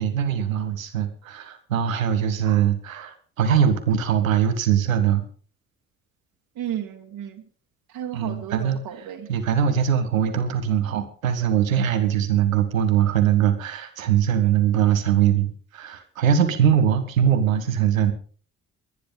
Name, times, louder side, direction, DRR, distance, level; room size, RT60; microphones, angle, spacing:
voice 1, 0.0-5.2 8.1-8.8 9.3-18.1, right 9 dB, 85° right, 8 dB, 1.6 m, -21 dB
voice 2, 6.6-7.4 7.9-9.3, right 10 dB, 65° right, 2 dB, 2.4 m, -33 dB
21.0 x 10.5 x 5.3 m, 0.43 s
figure-of-eight pair, 40°, 39 cm